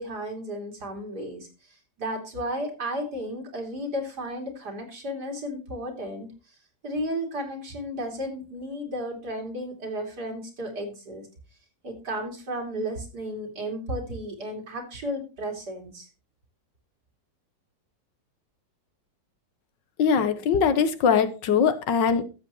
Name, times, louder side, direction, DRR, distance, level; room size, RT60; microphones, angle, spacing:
voice 1, 0.0-1.5 2.0-6.3 6.8-11.3 11.8-16.1, equal, 65° right, 3.5 m, -33 dB
voice 2, 20.0-22.2, left 6 dB, 85° left, 1.7 m, -21 dB
13.5 x 7.7 x 3.0 m
omnidirectional pair, 1.9 m